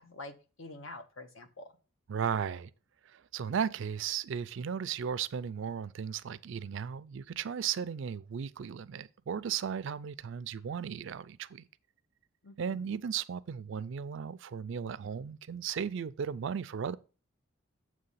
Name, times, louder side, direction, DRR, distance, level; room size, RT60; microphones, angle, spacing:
voice 1, 0.0-1.7 12.4-13.0, left 2 dB, 70° left, 1.0 m, -47 dB
voice 2, 2.1-2.7 3.1-11.7 12.6-17.0, right 7 dB, 65° right, 0.4 m, -35 dB
7.7 x 3.2 x 5.5 m
head